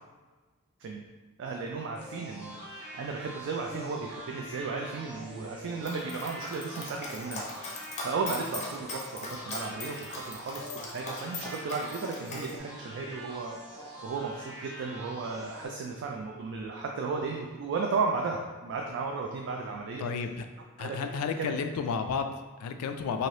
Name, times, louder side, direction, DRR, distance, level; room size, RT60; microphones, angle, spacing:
voice 1, 1.4-20.0 20.8-21.0 21.4-21.6, right 4 dB, 60° right, 0 dB, 0.3 m, -35 dB
sound 1, 1.9-15.7, equal, 25° right, 0.9 m, -45 dB
Dog, 5.8-12.5, left 3 dB, 30° left, 0.5 m, -40 dB
voice 2, 20.0-20.4 20.8-23.3, left 5 dB, 90° left, 12 dB, 0.3 m, -32 dB
2.7 x 2.6 x 3.2 m, 1.3 s
head